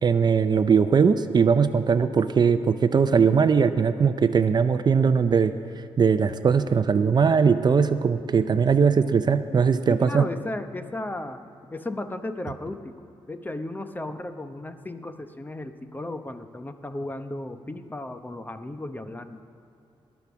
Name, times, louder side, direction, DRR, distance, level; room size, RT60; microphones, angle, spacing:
voice 1, 0.0-5.5 6.0-10.3, right 6 dB, 45° right, 11 dB, 0.6 m, -20 dB
voice 2, 9.9-11.4 11.7-12.9 13.3-19.4, left 1 dB, 20° left, 9 dB, 0.8 m, -35 dB
20.0 x 7.1 x 6.2 m, 2.8 s
cardioid pair, 75°, 10 cm